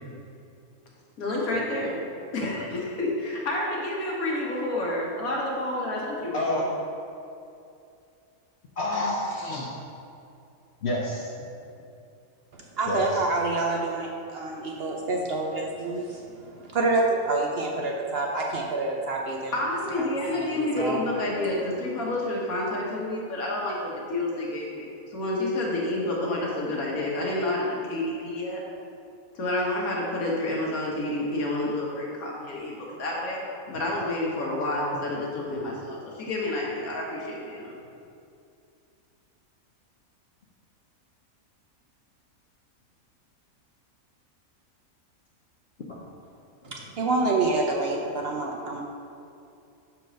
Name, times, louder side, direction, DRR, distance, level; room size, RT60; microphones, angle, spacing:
voice 1, 1.2-2.0 2.3-6.6 19.5-28.6 29.3-33.4 33.7-37.7, left 1 dB, 85° left, -4 dB, 1.8 m, -29 dB
voice 2, 8.8-9.7 10.8-11.3 12.9-13.2 45.9-46.0, left 1 dB, 55° left, -3 dB, 0.9 m, -28 dB
voice 3, 12.8-16.2 16.7-19.5 20.0-20.1 20.5-21.0 46.7-48.8, right 3 dB, 60° right, 0 dB, 0.7 m, -27 dB
5.2 x 4.6 x 6.2 m, 2.6 s
omnidirectional pair, 1.5 m